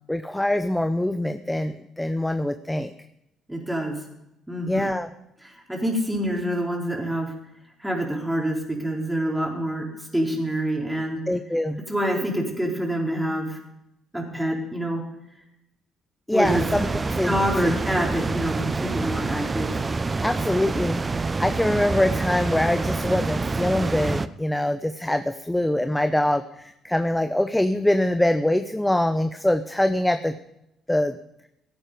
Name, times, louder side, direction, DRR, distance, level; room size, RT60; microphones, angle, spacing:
voice 1, 0.1-2.9 4.7-5.1 11.3-11.8 16.3-17.4 17.6-17.8 20.2-30.4 30.9-31.2, left 1 dB, 10° left, 10 dB, 0.7 m, -24 dB
voice 2, 3.5-3.9 4.5-4.9 5.4-7.3 7.8-9.9 10.1-11.2 11.9-13.6 14.1-15.0 16.3-16.6 17.2-19.8, right 1 dB, 5° right, 0 dB, 4.1 m, -26 dB
sound 1, 16.4-24.3, right 3 dB, 30° right, 0.7 m, -27 dB
16.5 x 8.9 x 5.2 m, 0.86 s
hypercardioid pair, 55°, 0 cm